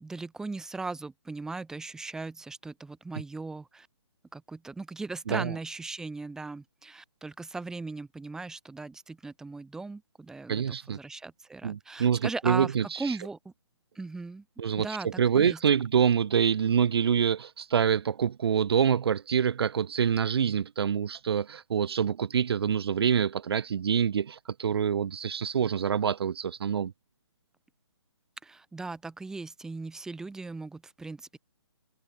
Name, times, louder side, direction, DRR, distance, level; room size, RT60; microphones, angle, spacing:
voice 1, 0.0-3.9 4.3-13.4 14.0-14.4 14.8-15.6 28.4-31.4, right 3 dB, 5° right, 1.9 m, -38 dB
voice 2, 10.5-11.0 11.6-13.2 14.6-26.9, right 7 dB, 60° right, 0.8 m, -26 dB
hypercardioid pair, 155°, 15 cm